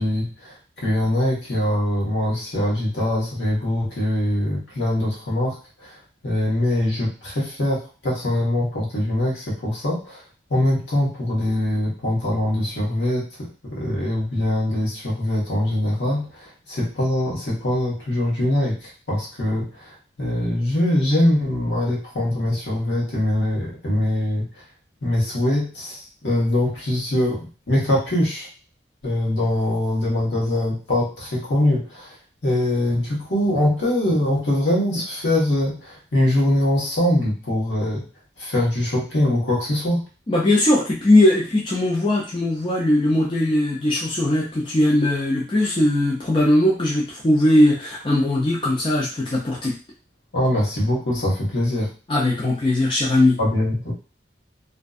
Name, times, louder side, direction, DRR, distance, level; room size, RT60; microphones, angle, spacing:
voice 1, 0.0-6.0 6.2-10.2 10.5-24.6 25.0-28.5 29.0-32.1 32.4-38.1 38.4-40.0 50.3-51.9 53.4-53.9, left 1 dB, 75° left, -4 dB, 1.0 m, -23 dB
voice 2, 40.3-49.7 52.1-53.4, left 1 dB, 25° left, -5 dB, 0.4 m, -19 dB
2.5 x 2.1 x 2.3 m, 0.35 s
head